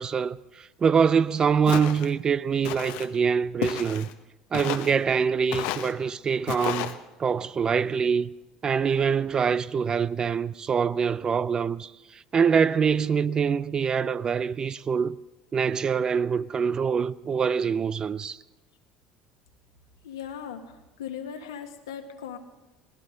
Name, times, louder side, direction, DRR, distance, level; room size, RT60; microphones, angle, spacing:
voice 1, 0.0-4.1 4.5-8.3 8.6-15.2 15.5-18.4, right 6 dB, 35° right, 0.5 m, -25 dB
Walk footsteps, 1.7-2.1 2.6-3.1 3.6-4.1 4.5-5.0 5.5-5.9 6.5-6.9, left 13 dB, 70° left, 0.9 m, -32 dB
voice 2, 20.0-20.6 21.0-22.4, left 8 dB, 85° left, 1.6 m, -37 dB
21.0 x 18.0 x 3.9 m
hypercardioid pair, 75°, 2 cm